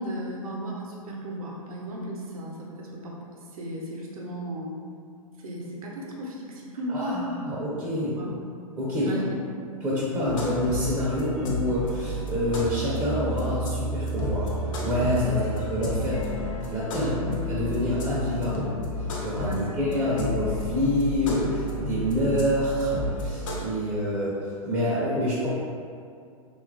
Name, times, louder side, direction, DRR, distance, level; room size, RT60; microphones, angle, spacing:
voice 1, 0.0-3.2 3.5-4.7 5.4-7.4 7.8-8.3 9.0-9.2 15.3-15.4 17.2-17.3 19.4-19.7, right 1 dB, 70° right, -3 dB, 0.6 m, -35 dB
voice 2, 6.9-8.2 8.8-9.1 9.8-16.3 16.7-25.5, left 1 dB, 15° right, -8 dB, 0.4 m, -27 dB
sound 1, 10.3-23.6, equal, 60° left, 0.6 m, -31 dB
2.8 x 2.3 x 2.4 m, 2.3 s
hypercardioid pair, 110°, 19 cm